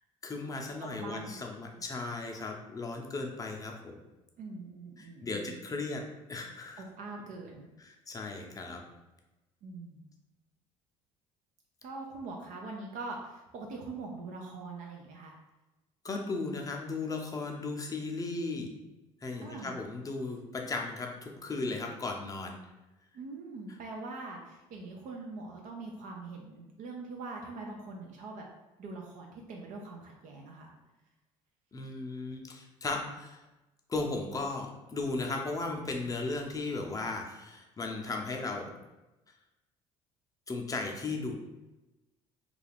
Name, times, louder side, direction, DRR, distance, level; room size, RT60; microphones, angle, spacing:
voice 1, 0.2-4.0 5.0-6.0 6.3-6.8 7.8-8.8 16.0-18.7 19.2-22.6 31.7-33.4 33.9-38.7 40.5-41.3, left 3 dB, 25° left, 2 dB, 0.6 m, -36 dB
voice 2, 0.8-1.4 1.8-1.9 4.4-5.6 6.8-7.7 9.6-10.1 11.8-15.4 19.4-19.8 23.1-28.5 28.8-30.7, right 3 dB, 65° right, 0 dB, 0.5 m, -43 dB
2.4 x 2.3 x 3.4 m, 1.0 s
supercardioid pair, 70°, 14 cm